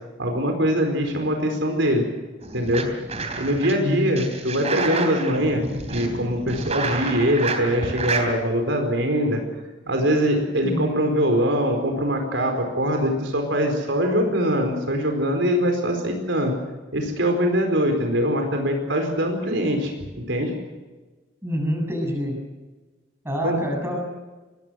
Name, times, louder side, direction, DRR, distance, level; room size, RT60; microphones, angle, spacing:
voice 1, 0.2-2.0 2.5-2.9 3.4-9.4 9.9-16.5 16.9-20.5 23.4-23.6, equal, 75° right, 4 dB, 4.6 m, -23 dB
sound 1, 2.4-3.7 4.2-8.3, right 3 dB, 35° right, 3.3 m, -29 dB
voice 2, 3.7-4.1 10.6-11.0 21.4-22.4 23.2-24.0, equal, 15° right, 1 dB, 7.3 m, -26 dB
24.0 x 20.5 x 6.5 m, 1.2 s
head